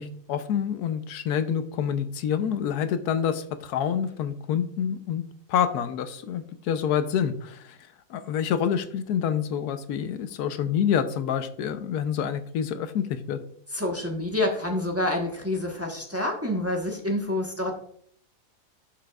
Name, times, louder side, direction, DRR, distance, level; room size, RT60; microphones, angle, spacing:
voice 1, 0.0-5.2 5.5-7.8 8.1-13.4, left 8 dB, 85° left, 11 dB, 1.2 m, -27 dB
voice 2, 13.7-17.7, left 1 dB, 10° right, 0 dB, 1.0 m, -27 dB
11.5 x 5.8 x 2.3 m, 0.63 s
omnidirectional pair, 1.6 m